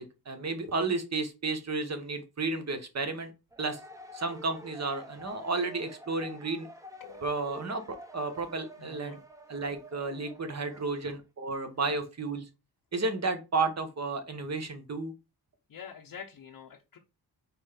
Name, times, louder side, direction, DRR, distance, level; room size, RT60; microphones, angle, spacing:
voice 1, 0.0-3.3 3.6-3.8 4.1-6.7 7.2-9.2 9.5-12.5 12.9-15.1, right 3 dB, 40° right, 1.2 m, -32 dB
sound 1, 3.5-11.2, equal, 10° right, 0.8 m, -49 dB
voice 2, 7.0-7.4 8.8-9.2 10.2-10.3 15.7-17.0, left 7 dB, 55° left, 0.8 m, -47 dB
4.4 x 4.3 x 5.1 m
wide cardioid pair, 165°, 40 cm